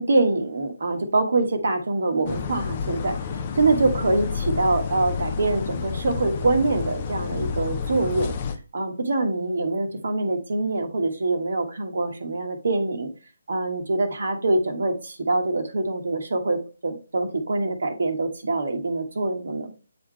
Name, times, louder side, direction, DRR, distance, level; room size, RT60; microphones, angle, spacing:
voice 1, 0.0-3.2 3.5-8.3 8.7-13.1 13.5-19.7, right 2 dB, 55° right, 4 dB, 1.4 m, -24 dB
sound 1, 2.3-8.6, left 6 dB, 30° left, 0.8 m, -30 dB
9.0 x 3.7 x 3.1 m, 0.34 s
figure-of-eight pair, 145°, 0 cm